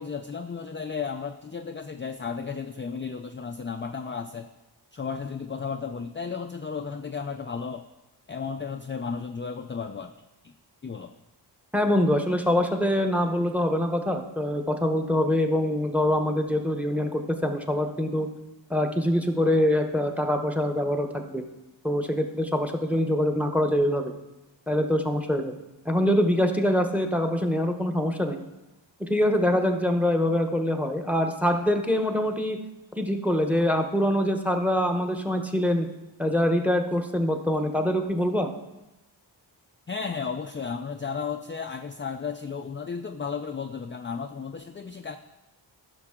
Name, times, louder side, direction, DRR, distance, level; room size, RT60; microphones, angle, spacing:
voice 1, 0.0-4.5 4.9-7.9 8.3-10.1 10.4-10.5 10.8-11.1 39.9-45.2, left 5 dB, 30° left, 6 dB, 0.4 m, -34 dB
voice 2, 11.7-18.3 18.7-21.4 21.8-24.1 24.7-25.5 25.8-28.4 29.0-32.6 33.0-35.9 36.2-38.5, left 1 dB, 5° right, 5 dB, 0.9 m, -24 dB
14.5 x 6.0 x 3.7 m, 1.0 s
wide cardioid pair, 80°, 45 cm